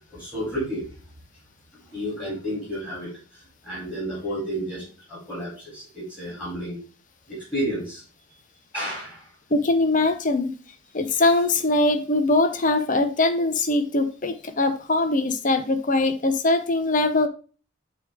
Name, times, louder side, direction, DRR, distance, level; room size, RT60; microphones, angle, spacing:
voice 1, 0.1-0.9 1.7-6.8 7.3-8.0 8.7-9.3, equal, 10° left, 3.8 m, -32 dB
voice 2, 9.5-10.5 10.9-17.3, left 2 dB, 40° left, 0.8 m, -22 dB
8.5 x 3.7 x 3.6 m
head